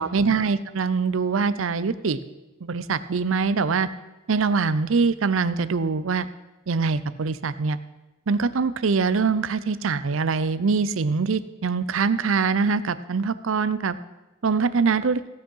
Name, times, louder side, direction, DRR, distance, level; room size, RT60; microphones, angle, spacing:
voice 1, 0.0-2.2 2.6-3.9 4.3-6.3 6.7-7.8 8.3-14.0 14.4-15.2, right 4 dB, 70° right, 15 dB, 0.6 m, -23 dB
16.5 x 6.2 x 5.5 m, 1.1 s
head